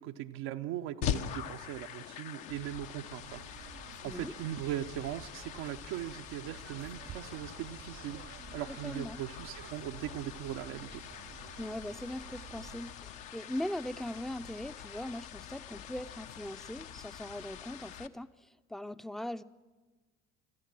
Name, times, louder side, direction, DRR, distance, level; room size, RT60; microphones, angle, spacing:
voice 1, 0.0-8.2 8.5-11.0, right 12 dB, 70° right, 5 dB, 0.9 m, -40 dB
sound 1, 1.0-18.1, left 10 dB, 65° left, 1.1 m, -44 dB
sound 2, 3.2-13.0, right 10 dB, 40° right, 0.6 m, -52 dB
voice 2, 8.7-9.2 11.6-19.4, left 1 dB, ahead, 12 dB, 0.6 m, -40 dB
26.0 x 14.0 x 7.6 m, 1.3 s
hypercardioid pair, 65°, 36 cm